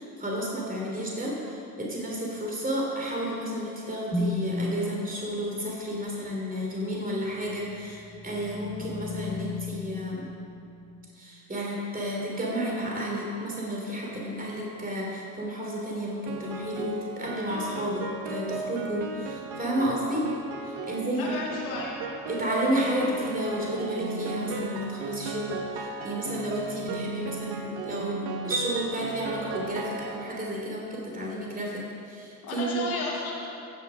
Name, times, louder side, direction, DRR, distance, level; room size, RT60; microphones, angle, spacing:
voice 1, 0.0-10.3 11.1-20.3 20.6-21.3 22.3-32.9, equal, 20° right, -3 dB, 3.2 m, -31 dB
sound 1, 4.1-4.7 7.6-11.0, left 2 dB, 5° left, 1.1 m, -34 dB
Piano, 16.3-30.6, right 4 dB, 65° right, 1.0 m, -36 dB
voice 2, 20.9-22.0 32.4-33.5, left 3 dB, 90° left, -3 dB, 1.8 m, -33 dB
15.0 x 6.7 x 5.1 m, 2.5 s
hypercardioid pair, 50°, 41 cm